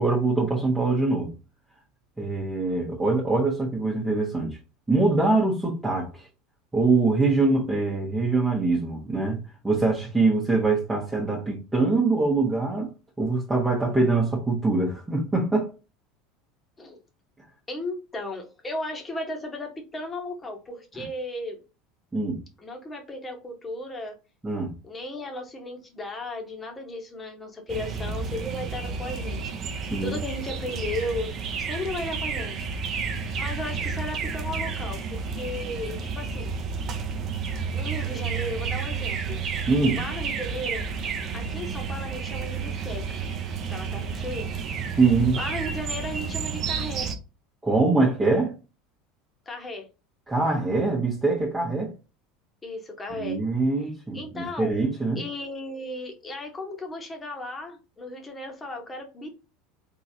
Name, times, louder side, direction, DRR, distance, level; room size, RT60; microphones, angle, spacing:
voice 1, 0.0-1.3 2.2-4.6 4.9-6.3 6.7-9.4 9.6-12.9 13.2-15.7 22.1-22.4 24.4-24.7 29.9-30.2 39.7-40.0 45.0-45.4 47.6-48.5 50.3-51.9 53.2-55.2, right 3 dB, 15° right, 1.4 m, -23 dB
voice 2, 17.7-21.6 22.6-24.2 24.8-32.6 33.4-36.6 37.7-39.4 39.9-40.9 41.3-43.3 43.7-44.6 45.3-47.1 49.5-49.9 52.6-53.4 54.1-54.7 55.2-59.3, left 1 dB, 20° left, 1.6 m, -35 dB
sound 1, 27.7-47.1, right 5 dB, 45° right, 0.8 m, -31 dB
3.8 x 3.8 x 2.8 m
figure-of-eight pair, 75°, 0 cm